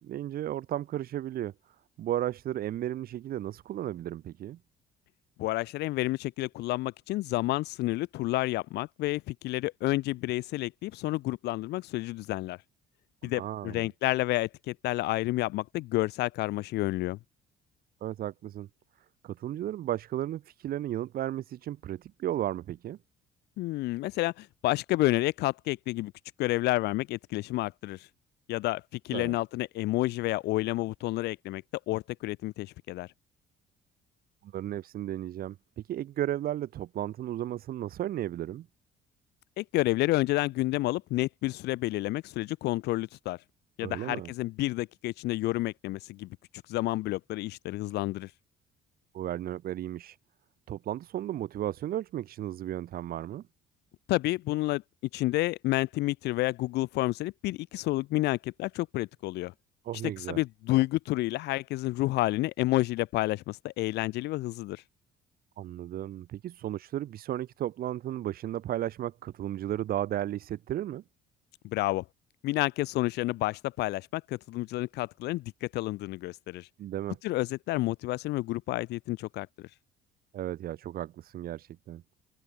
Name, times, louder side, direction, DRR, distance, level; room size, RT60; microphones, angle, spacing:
voice 1, 0.0-1.5 2.0-4.6 13.2-13.9 18.0-18.7 19.2-23.0 29.1-29.4 34.4-38.7 43.8-44.3 49.1-50.2 50.7-53.4 59.8-60.4 65.6-71.0 76.8-77.2 80.3-82.0, right 12 dB, 60° right, 1.8 m, -34 dB
voice 2, 5.4-12.6 13.2-17.2 23.6-26.1 26.4-28.1 28.5-33.1 39.6-43.4 43.8-46.3 46.7-48.3 54.1-54.8 55.1-59.5 60.2-64.8 71.6-72.0 72.4-76.7 77.2-79.7, left 18 dB, 80° left, 1.3 m, -30 dB
open air
cardioid pair, 110°, 17 cm